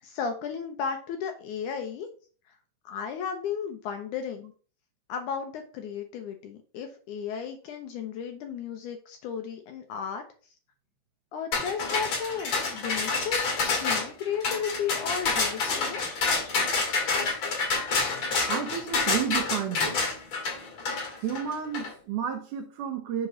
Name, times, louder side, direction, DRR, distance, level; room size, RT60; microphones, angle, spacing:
voice 1, 0.0-2.1 2.5-2.6 2.9-4.5 5.1-10.2 11.3-16.0, left 7 dB, 75° left, 1.9 m, -34 dB
sound 1, 11.5-21.9, left 4 dB, 50° left, 3.0 m, -28 dB
voice 2, 18.5-20.0 21.2-23.3, right 8 dB, 75° right, 2.0 m, -31 dB
7.2 x 3.0 x 6.1 m
omnidirectional pair, 4.1 m